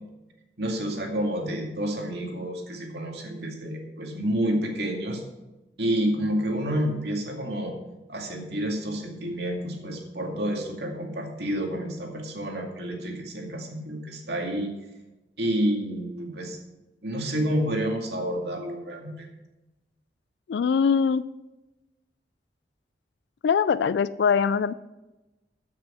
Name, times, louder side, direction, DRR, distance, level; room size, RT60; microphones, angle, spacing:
voice 1, 0.6-5.2 5.8-7.7 8.1-14.7 15.4-16.6 17.0-19.3, equal, 70° right, 1 dB, 2.3 m, -29 dB
voice 2, 20.5-21.2 23.4-24.7, left 6 dB, 80° left, 15 dB, 0.3 m, -22 dB
13.5 x 6.2 x 5.5 m, 1.0 s
head